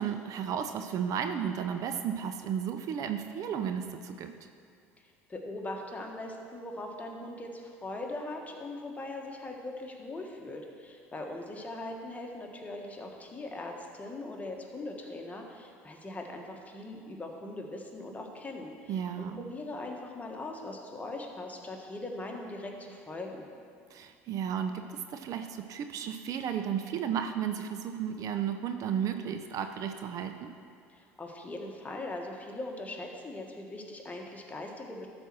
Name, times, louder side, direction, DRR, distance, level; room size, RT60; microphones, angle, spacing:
voice 1, 0.0-4.3 18.9-19.4 23.9-30.5, right 8 dB, 50° right, 7 dB, 0.6 m, -33 dB
voice 2, 5.3-23.4 30.9-35.1, left 2 dB, 20° left, 1 dB, 1.5 m, -40 dB
12.5 x 4.4 x 6.2 m, 2.2 s
hypercardioid pair, 65°, 7 cm